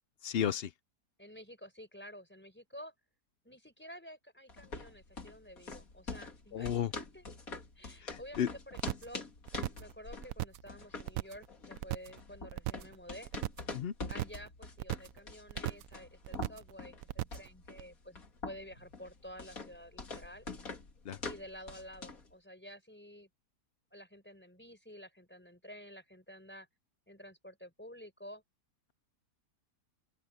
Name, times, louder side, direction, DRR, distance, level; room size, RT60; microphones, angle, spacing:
voice 1, 0.2-0.7 6.5-6.9 8.0-8.5 13.7-13.9 21.1-21.2, left 9 dB, 80° left, 0.5 m, -33 dB
voice 2, 1.2-2.9 3.4-7.2 7.7-9.2 9.7-13.3 14.1-20.5 21.2-23.3 23.9-26.7 27.1-28.4, equal, 5° left, 4.6 m, -51 dB
sound 1, 4.5-22.3, left 3 dB, 55° left, 3.1 m, -45 dB
sound 2, 8.8-9.2 9.5-9.9 10.2-10.7 11.0-11.5 11.7-12.2 12.5-12.9 13.2-13.7 14.0-14.5 14.8-15.2 15.5-15.9 16.2-16.7 17.0-17.5 17.8-17.9, right 15 dB, 70° right, 0.8 m, -37 dB
open air
omnidirectional pair, 1.8 m